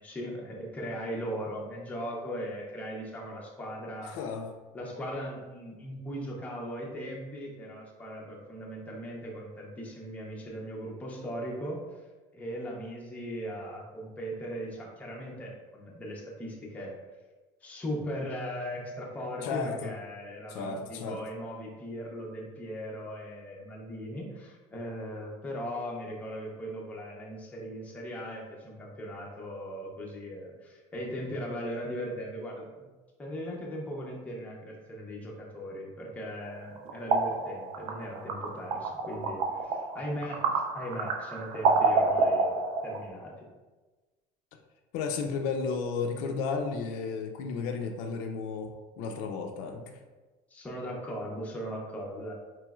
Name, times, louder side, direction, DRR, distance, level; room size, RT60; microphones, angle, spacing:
voice 1, 0.0-4.1 4.7-11.8 12.3-16.9 17.6-32.9 33.2-43.5 50.5-52.3, equal, 10° left, -2 dB, 0.5 m, -38 dB
voice 2, 4.0-4.5 19.4-19.9 20.5-21.2 44.9-48.7 49.0-50.0, left 5 dB, 75° left, 4 dB, 0.4 m, -33 dB
sound 1, 36.4-43.1, right 4 dB, 70° right, 0.5 m, -28 dB
4.5 x 3.0 x 2.3 m, 1.2 s
cardioid pair, 175°, 14 cm